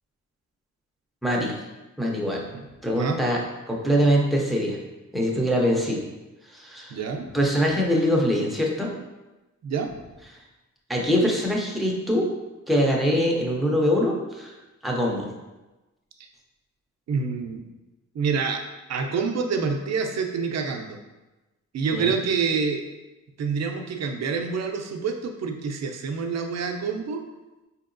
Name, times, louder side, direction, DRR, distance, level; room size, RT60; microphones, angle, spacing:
voice 1, 1.2-1.6 2.0-2.5 2.8-3.4 3.7-4.8 5.1-6.0 6.5-7.0 7.3-8.9 10.9-12.3 12.7-14.5 14.8-15.3 21.9-22.1, equal, ahead, -2 dB, 0.4 m, -23 dB
voice 2, 6.9-7.3 9.6-9.9 16.2-16.3 17.1-17.6 18.1-18.6 18.9-21.0 21.7-22.8 23.4-27.2, right 5 dB, 60° right, 4 dB, 0.4 m, -27 dB
4.4 x 2.8 x 2.5 m, 1.1 s
wide cardioid pair, 170°, 30 cm